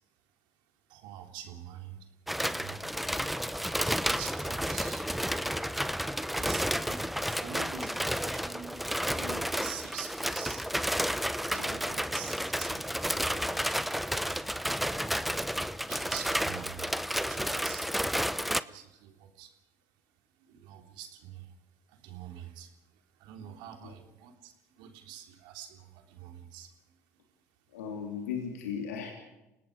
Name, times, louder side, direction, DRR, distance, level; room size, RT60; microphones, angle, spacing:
voice 1, 0.9-2.1 2.5-2.9 3.8-5.1 6.3-8.8 9.5-10.6 11.4-13.8 14.7-15.4 15.8-17.0 17.3-17.9 18.6-19.5 20.4-21.5 21.9-22.7 23.2-26.7, right 9 dB, 70° right, 5 dB, 3.3 m, -46 dB
sound 1, 2.3-18.6, equal, ahead, 0.9 m, -31 dB
voice 2, 27.7-29.1, left 7 dB, 85° left, 2 dB, 3.2 m, -37 dB
29.5 x 18.0 x 5.0 m, 0.97 s
hypercardioid pair, 65°, 8 cm